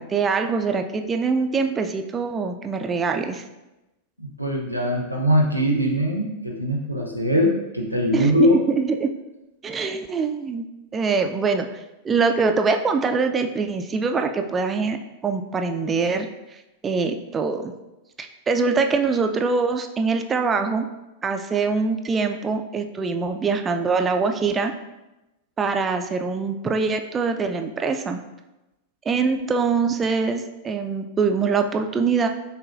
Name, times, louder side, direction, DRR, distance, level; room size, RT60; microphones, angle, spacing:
voice 1, 0.0-3.4 8.1-9.1 9.6-10.7 10.9-11.7 12.0-15.0 15.2-16.3 16.8-17.7 18.2-20.9 21.2-24.7 25.6-28.2 29.1-32.3, right 4 dB, 20° right, 5 dB, 0.3 m, -23 dB
voice 2, 4.2-8.6, equal, 90° left, -1 dB, 0.6 m, -21 dB
6.6 x 2.2 x 2.5 m, 0.98 s
figure-of-eight pair, 90°, 0 cm